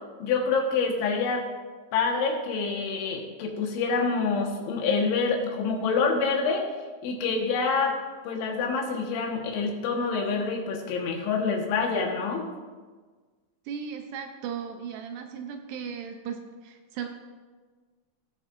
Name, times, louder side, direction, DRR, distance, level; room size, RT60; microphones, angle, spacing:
voice 1, 0.2-1.5 1.9-6.7 7.0-8.0 8.3-12.5, left 4 dB, 90° left, 1 dB, 3.8 m, -26 dB
voice 2, 13.7-17.1, right 7 dB, 80° right, 5 dB, 2.6 m, -36 dB
19.5 x 7.4 x 2.6 m, 1.4 s
omnidirectional pair, 5.2 m